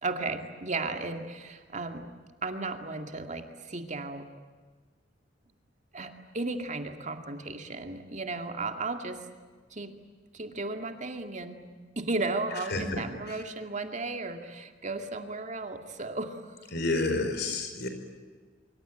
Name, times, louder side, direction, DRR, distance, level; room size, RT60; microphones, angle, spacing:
voice 1, 0.0-2.1 2.4-4.3 5.9-9.3 9.7-10.0 10.3-11.6 12.0-16.4, right 3 dB, 40° right, 6 dB, 2.3 m, -35 dB
voice 2, 12.7-13.0 13.3-13.4 16.7-17.9, left 2 dB, 60° left, 7 dB, 5.1 m, -29 dB
25.5 x 24.5 x 9.0 m, 1.5 s
head